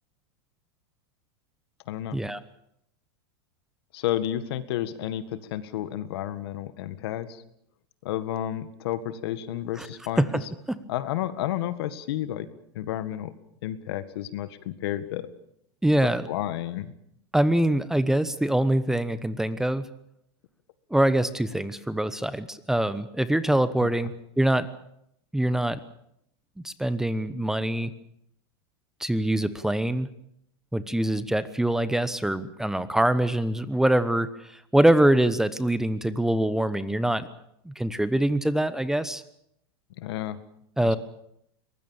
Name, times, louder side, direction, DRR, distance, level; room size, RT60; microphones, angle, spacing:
voice 1, 1.9-2.2 3.9-7.4 8.0-10.3 10.9-12.5 12.7-13.3 13.6-15.3 16.3-16.9 23.8-23.9 40.0-40.4, left 12 dB, 70° left, 13 dB, 1.8 m, -31 dB
voice 2, 15.8-16.3 17.3-19.9 20.9-24.7 25.3-25.8 26.6-27.9 29.0-30.1 30.7-37.3 37.6-39.2 40.8-41.0, right 1 dB, 5° right, 14 dB, 0.9 m, -24 dB
23.0 x 19.5 x 7.2 m, 0.74 s
supercardioid pair, 130°, 13 cm